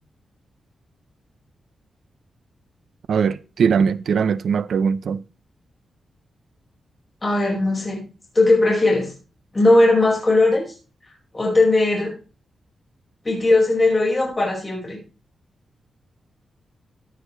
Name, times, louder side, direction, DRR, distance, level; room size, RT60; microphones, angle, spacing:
voice 1, 3.1-5.2, right 6 dB, 65° right, 0.6 m, -20 dB
voice 2, 7.2-8.0 8.3-9.1 9.5-10.6 11.3-12.1 13.2-15.0, left 2 dB, 20° left, 4.9 m, -18 dB
14.5 x 9.9 x 3.2 m
wide cardioid pair, 175°, 0 cm